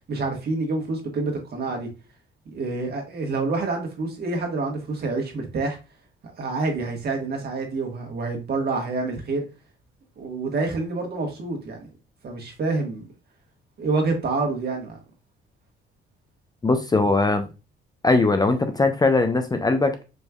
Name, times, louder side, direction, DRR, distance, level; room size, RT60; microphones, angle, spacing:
voice 1, 0.1-1.9 2.5-5.8 6.4-9.5 10.2-11.8 12.2-13.0 13.8-15.0, right 3 dB, 55° right, 1.6 m, -27 dB
voice 2, 16.6-17.4 18.0-20.0, left 3 dB, 20° left, 0.5 m, -20 dB
5.0 x 3.2 x 2.3 m
cardioid pair, 90°, 20 cm